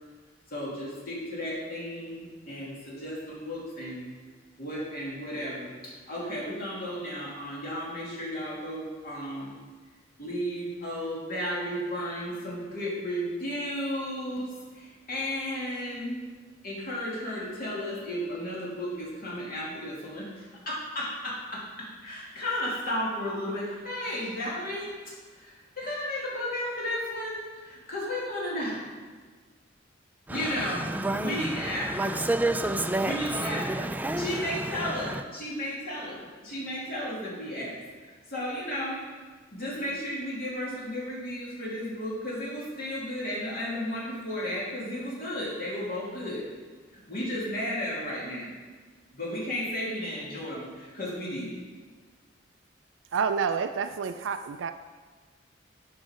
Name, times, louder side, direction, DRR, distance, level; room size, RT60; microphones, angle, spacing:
voice 1, 0.5-4.1 4.6-9.5 10.2-16.3 16.6-28.9 30.3-30.9 31.2-32.1 33.0-33.9 34.2-39.0 39.5-46.5 46.9-48.5 49.1-51.6, equal, 50° left, 2.6 m, -34 dB
voice 2, 30.3-35.2, right 2 dB, 10° right, 0.4 m, -30 dB
voice 3, 53.1-54.7, right 6 dB, 70° right, 0.4 m, -28 dB
12.0 x 5.3 x 5.1 m
head